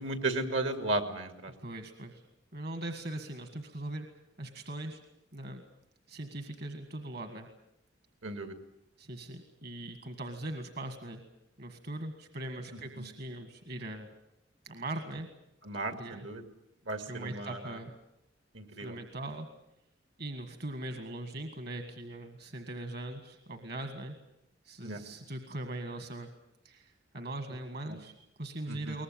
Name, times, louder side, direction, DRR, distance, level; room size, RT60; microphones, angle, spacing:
voice 1, 0.0-1.5 8.2-8.5 13.0-13.1 15.7-16.4 16.9-17.6 18.5-18.9 24.8-25.0 28.7-28.9, right 2 dB, 80° right, 7 dB, 2.5 m, -34 dB
voice 2, 1.6-2.3 2.5-4.1 4.4-5.0 5.3-5.6 6.1-7.5 9.0-11.2 11.6-14.1 14.6-15.3 15.9-16.3 17.0-18.0 18.8-19.5 20.2-24.1 24.6-26.3 26.6-29.0, right 1 dB, 60° right, 7 dB, 1.8 m, -40 dB
22.5 x 19.5 x 8.9 m, 0.84 s
head